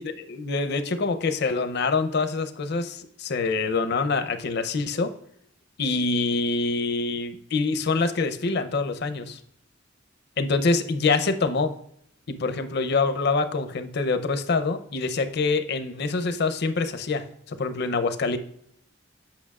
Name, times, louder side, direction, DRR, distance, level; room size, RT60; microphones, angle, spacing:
voice 1, 0.0-5.1 5.8-9.4 10.4-11.7 12.3-18.4, left 4 dB, 60° left, 9 dB, 0.6 m, -25 dB
8.5 x 5.8 x 2.3 m, 0.70 s
head